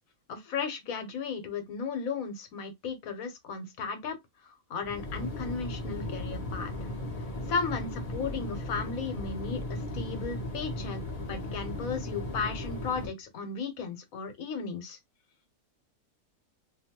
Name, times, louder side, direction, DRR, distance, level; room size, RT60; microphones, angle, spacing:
voice 1, 0.3-4.2 4.4-6.9 7.5-11.0 11.3-15.0, left 5 dB, 75° left, 1.2 m, -35 dB
sound 1, 4.8-13.1, left 1 dB, 35° left, 0.7 m, -36 dB
2.6 x 2.3 x 2.8 m
omnidirectional pair, 1.5 m